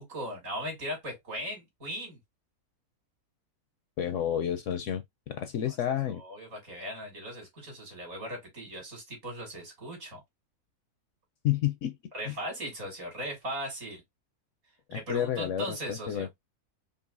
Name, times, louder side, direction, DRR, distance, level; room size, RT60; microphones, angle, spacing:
voice 1, 0.0-2.2 6.2-10.2 12.1-14.0 14.9-16.3, equal, 60° right, 2.9 m, -38 dB
voice 2, 4.0-6.2 11.4-12.0 12.3-12.4 14.9-16.3, left 10 dB, 70° left, 0.8 m, -30 dB
5.3 x 2.5 x 2.5 m
omnidirectional pair, 1.6 m